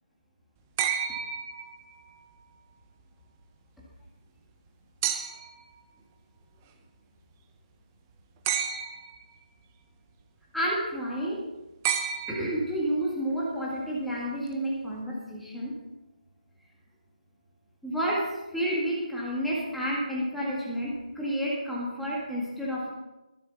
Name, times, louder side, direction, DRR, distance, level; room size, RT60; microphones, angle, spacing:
sound 1, 0.8-2.2 5.0-5.6 8.4-9.2 11.8-12.9 14.5-14.6, right 8 dB, 15° right, 0.7 m, -31 dB
voice 1, 10.5-11.4 12.3-15.7 17.8-22.9, equal, ahead, -6 dB, 1.9 m, -30 dB
22.5 x 7.9 x 4.0 m, 1.0 s
hypercardioid pair, 170°, 5 cm